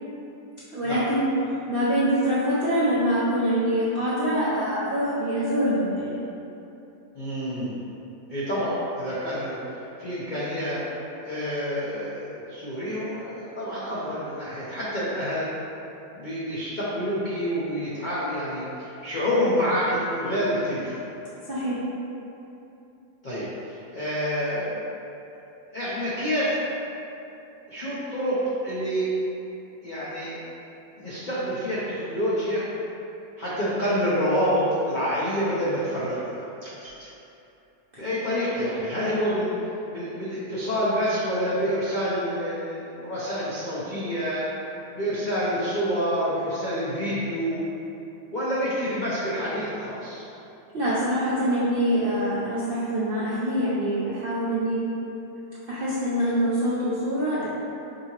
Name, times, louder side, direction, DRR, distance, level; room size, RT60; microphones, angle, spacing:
voice 1, 0.7-1.3 1.7-6.2 21.4-21.8 50.7-54.9 55.7-57.5, equal, 70° right, -9 dB, 0.5 m, -24 dB
voice 2, 7.1-7.8 8.3-10.8 11.2-15.5 16.1-21.0 23.2-24.8 25.7-26.6 27.7-29.1 29.8-30.4 31.0-32.6 33.4-36.4 38.0-39.5 39.9-44.5 44.9-47.6 48.3-50.3, equal, 70° left, -9 dB, 0.4 m, -27 dB
sound 1, 36.6-37.1, right 1 dB, 30° right, 0.7 m, -46 dB
5.1 x 2.8 x 2.9 m, 2.9 s
omnidirectional pair, 1.7 m